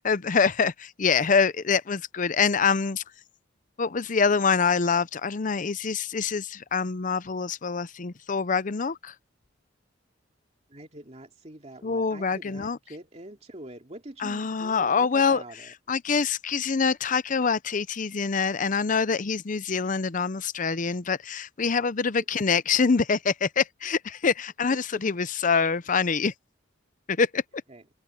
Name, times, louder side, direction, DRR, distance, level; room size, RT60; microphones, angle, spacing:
voice 1, 0.0-3.0 3.8-9.1 11.8-12.8 14.2-15.4 15.9-26.3 27.1-27.4, left 5 dB, 40° left, 0.6 m, -25 dB
voice 2, 10.7-15.7 22.4-22.5 24.9-25.0 27.7-27.8, right 1 dB, 35° right, 2.6 m, -44 dB
head